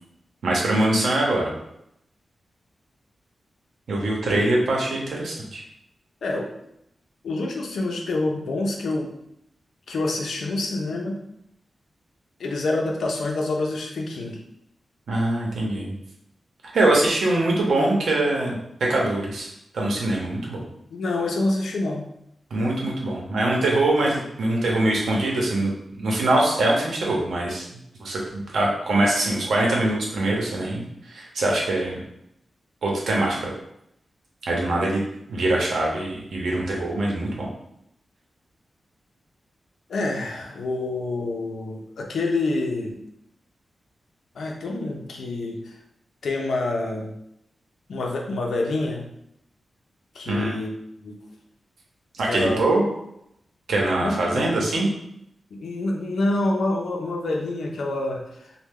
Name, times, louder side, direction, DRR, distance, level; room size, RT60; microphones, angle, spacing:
voice 1, 0.4-1.5 3.9-5.6 15.1-15.9 16.7-19.5 19.7-20.6 22.5-25.7 26.0-32.0 32.8-33.5 34.4-35.0 35.3-37.5 50.3-50.5 52.2-52.9 53.7-54.9, right 2 dB, 85° right, -2 dB, 0.8 m, -23 dB
voice 2, 7.2-9.1 9.9-11.2 12.4-14.4 20.9-22.1 39.9-43.0 44.3-45.8 46.2-47.1 47.9-49.1 50.1-51.2 52.2-52.6 54.0-54.7 55.5-58.5, left 2 dB, 90° left, 0 dB, 0.6 m, -27 dB
3.2 x 2.2 x 3.5 m, 0.78 s
wide cardioid pair, 155°, 0 cm